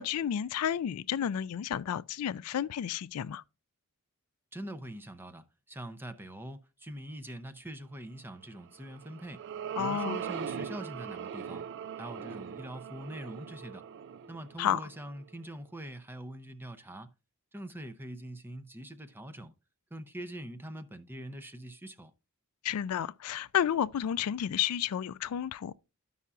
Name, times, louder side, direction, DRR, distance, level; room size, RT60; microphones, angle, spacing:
voice 1, 0.0-3.4 9.8-10.2 14.6-14.8 22.6-25.7, left 9 dB, 75° left, 0.3 m, -31 dB
voice 2, 4.5-9.4 9.8-11.6 12.0-13.9 14.3-17.1 17.5-19.5 19.9-22.1, right 1 dB, 10° right, 0.6 m, -43 dB
sound 1, 8.8-15.3, right 7 dB, 55° right, 0.3 m, -40 dB
13.0 x 5.6 x 2.4 m
head